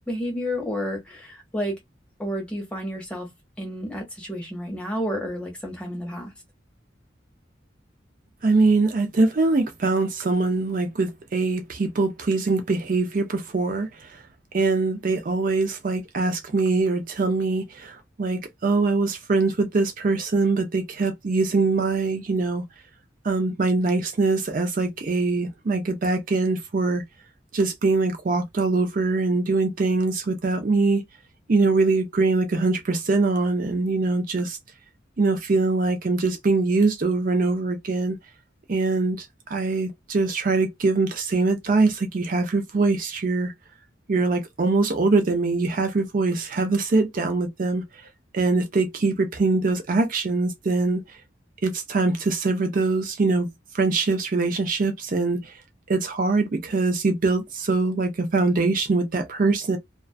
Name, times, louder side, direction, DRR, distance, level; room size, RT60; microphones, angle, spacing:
voice 1, 0.1-1.8 2.2-3.3 3.6-6.3, equal, 5° left, 1.0 m, -30 dB
voice 2, 8.4-14.2 14.5-22.6 23.2-27.0 27.5-31.0 31.5-34.6 35.2-38.2 38.7-43.5 44.1-47.8 48.3-51.2 51.6-53.5 53.7-55.6 55.9-59.8, right 3 dB, 45° right, 0.4 m, -23 dB
2.4 x 2.2 x 2.3 m
head